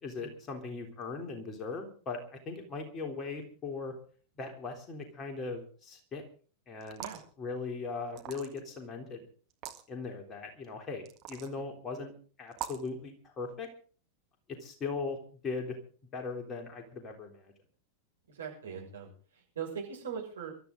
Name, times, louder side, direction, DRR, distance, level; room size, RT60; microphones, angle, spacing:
voice 1, 0.0-3.9 4.4-6.2 6.7-7.1 7.4-9.3 9.9-11.0 11.3-12.1 12.4-13.7 14.6-15.2 15.4-15.8 16.1-17.4, left 4 dB, 25° left, 3 dB, 3.6 m, -39 dB
sound 1, 6.8-7.3 8.1-8.7 9.5-9.8 11.1-11.5 12.5-12.9, right 11 dB, 35° right, 1.8 m, -42 dB
voice 2, 18.3-19.1 19.5-20.5, right 7 dB, 65° right, 0 dB, 6.4 m, -40 dB
23.0 x 13.0 x 3.9 m, 0.41 s
figure-of-eight pair, 90°, 0 cm